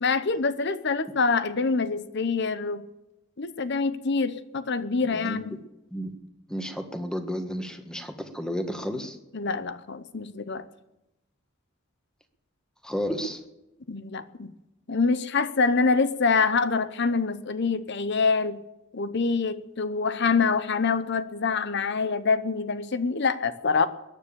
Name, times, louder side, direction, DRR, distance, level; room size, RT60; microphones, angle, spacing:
voice 1, 0.0-2.8 3.4-5.6 9.3-10.7 13.9-14.5 14.9-18.6 18.9-23.9, left 4 dB, 55° left, 13 dB, 0.9 m, -25 dB
voice 2, 5.0-5.4 5.9-6.1 6.5-9.2 12.8-13.4, equal, 5° left, 6 dB, 1.6 m, -32 dB
21.0 x 9.8 x 6.9 m, 0.94 s
head